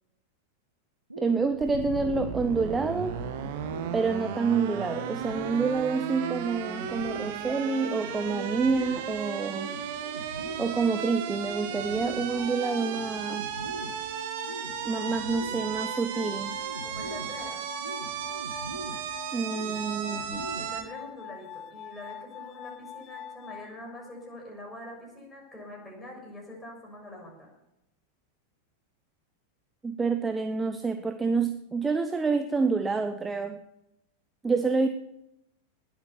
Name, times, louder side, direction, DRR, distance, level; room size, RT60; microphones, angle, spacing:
sound 1, 1.1-21.1, right 2 dB, 85° right, 1.6 m, -42 dB
voice 1, 1.2-3.1 3.9-9.7 10.6-13.5 14.8-16.6 19.3-20.4 29.8-33.6 34.4-34.9, right 4 dB, 10° right, 9 dB, 0.8 m, -28 dB
sound 2, 1.6-20.8, right 9 dB, 50° right, 1.7 m, -35 dB
Glass, 12.3-24.3, left 9 dB, 35° left, 0.6 m, -44 dB
voice 2, 16.8-17.6 20.6-27.5, left 1 dB, 10° left, -1 dB, 6.4 m, -44 dB
19.5 x 8.2 x 7.1 m, 0.86 s
figure-of-eight pair, 90°, 0 cm